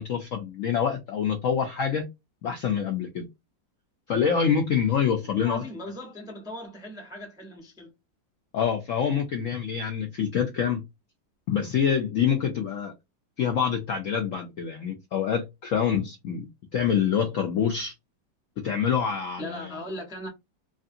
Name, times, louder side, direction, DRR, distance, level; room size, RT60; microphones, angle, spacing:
voice 1, 0.0-2.0 2.4-3.2 4.1-5.6 8.5-10.8 11.5-12.9 13.4-16.5 16.7-17.9 18.6-19.8, left 7 dB, 85° left, 0.7 m, -26 dB
voice 2, 5.4-7.9 19.4-20.3, equal, 5° right, 0.4 m, -38 dB
3.1 x 2.7 x 2.5 m
omnidirectional pair, 2.0 m